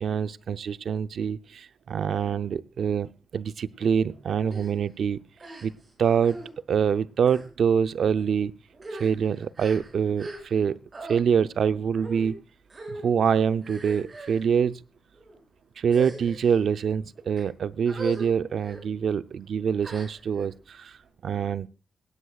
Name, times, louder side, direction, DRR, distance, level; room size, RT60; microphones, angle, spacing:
voice 1, 0.0-5.2 5.6-5.7 6.0-6.4 6.7-8.5 8.9-10.8 11.1-12.4 12.9-14.8 15.8-21.0 21.2-21.7, right 7 dB, 65° right, 0.6 m, -25 dB
sound 1, 4.5-4.7 5.4-5.9 6.2-6.5 7.2-7.5 8.2-8.3 8.7-10.6 10.9-11.2 12.0-12.3 12.7-13.1 13.6-14.4 15.1-15.4 15.9-16.6 17.1-17.4 17.9-18.3 18.6-18.8 19.8-20.5, right 2 dB, 30° right, 6.9 m, -40 dB
18.0 x 16.5 x 2.4 m
wide cardioid pair, 130°, 0 cm